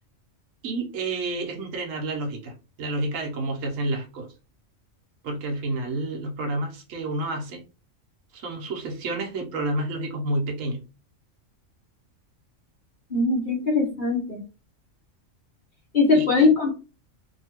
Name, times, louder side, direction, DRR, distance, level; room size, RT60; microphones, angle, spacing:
voice 1, 0.6-4.3 5.2-7.6 8.3-10.8 16.1-16.5, right 2 dB, 80° right, 2 dB, 1.1 m, -30 dB
voice 2, 13.1-14.4 15.9-16.7, left 3 dB, 45° left, 0 dB, 0.8 m, -21 dB
2.8 x 2.7 x 2.8 m, 0.33 s
omnidirectional pair, 1.3 m